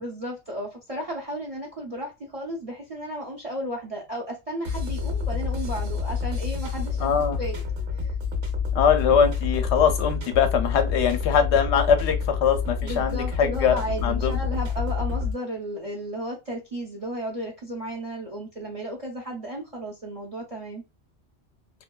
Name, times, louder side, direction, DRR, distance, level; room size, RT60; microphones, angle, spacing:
voice 1, 0.0-7.1 7.4-7.6 8.0-8.1 12.8-20.8, equal, 45° right, 0.5 m, -34 dB
sound 1, 4.6-15.3, left 5 dB, 85° right, 1.1 m, -28 dB
voice 2, 7.0-7.4 8.7-14.3, left 7 dB, 80° left, 0.8 m, -22 dB
2.6 x 2.2 x 2.2 m
omnidirectional pair, 1.2 m